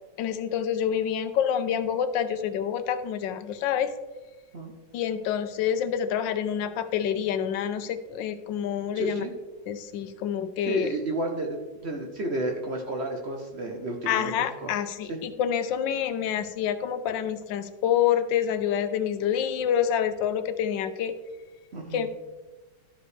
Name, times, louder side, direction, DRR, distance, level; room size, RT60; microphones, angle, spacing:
voice 1, 0.2-3.9 4.9-9.2 9.7-10.9 14.1-21.1 21.9-22.1, left 9 dB, 85° left, 10 dB, 1.3 m, -27 dB
voice 2, 8.9-9.3 10.7-14.3 14.6-14.7 15.1-15.2 21.7-22.1, right 2 dB, 50° right, 2 dB, 0.9 m, -31 dB
13.0 x 5.0 x 3.2 m, 1.2 s
omnidirectional pair, 1.9 m